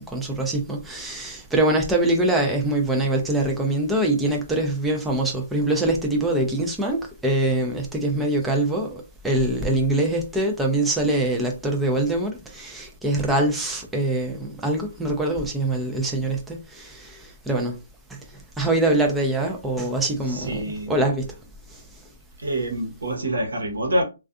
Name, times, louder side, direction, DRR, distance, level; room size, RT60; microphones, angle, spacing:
voice 1, 0.0-17.8 18.1-18.2 18.6-21.3 21.7-21.8, right 1 dB, 5° right, 0.5 m, -24 dB
voice 2, 20.2-21.0 22.4-24.0, right 1 dB, 85° right, 1.0 m, -26 dB
2.4 x 2.3 x 2.4 m
hypercardioid pair, 150°, 0 cm